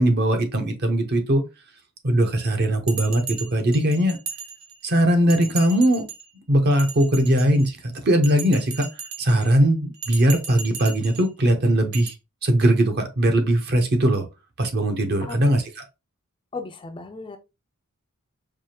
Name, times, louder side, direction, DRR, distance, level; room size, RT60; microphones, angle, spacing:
voice 1, 0.0-1.4 2.0-4.2 4.8-6.1 6.5-7.8 8.0-8.9 9.2-12.1 12.4-14.3 14.6-15.8, right 1 dB, 45° right, 0.7 m, -20 dB
Bell, 2.9-4.9 5.3-6.3 6.7-7.7 8.2-9.5 9.9-11.3 11.9-12.1, right 6 dB, 85° right, 1.0 m, -36 dB
voice 2, 16.5-17.4, left 4 dB, 20° left, 0.3 m, -35 dB
4.7 x 2.4 x 2.8 m
head